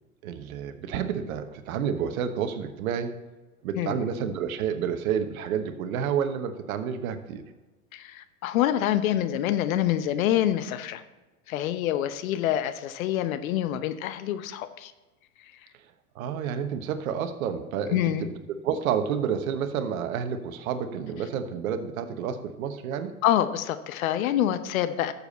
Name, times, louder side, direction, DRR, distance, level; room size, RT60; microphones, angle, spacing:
voice 1, 0.2-3.2 3.6-7.4 16.1-18.3 18.6-23.1, right 7 dB, 65° right, 9 dB, 1.2 m, -30 dB
voice 2, 3.8-4.1 7.9-11.0 11.5-14.9 17.9-18.2 23.2-25.1, left 12 dB, 60° left, 12 dB, 0.9 m, -26 dB
13.0 x 7.2 x 4.2 m, 1.2 s
hypercardioid pair, 115°, 45 cm